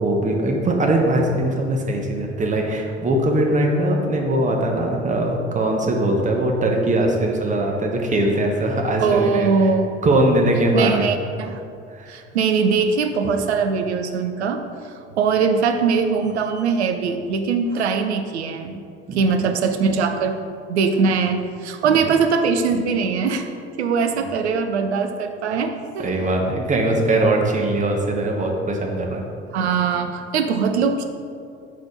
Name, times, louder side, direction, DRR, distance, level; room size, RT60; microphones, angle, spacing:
voice 1, 0.0-9.5 10.0-11.0 11.9-12.2 19.1-19.2 21.8-22.0 26.0-29.2, right 1 dB, 20° right, 1 dB, 0.9 m, -21 dB
voice 2, 9.0-9.9 10.7-11.6 12.1-14.6 15.2-18.8 19.2-20.4 20.7-23.5 23.8-26.1 29.5-31.1, right 5 dB, 75° right, 6 dB, 0.6 m, -21 dB
4.7 x 4.2 x 5.4 m, 2.4 s
figure-of-eight pair, 65°, 34 cm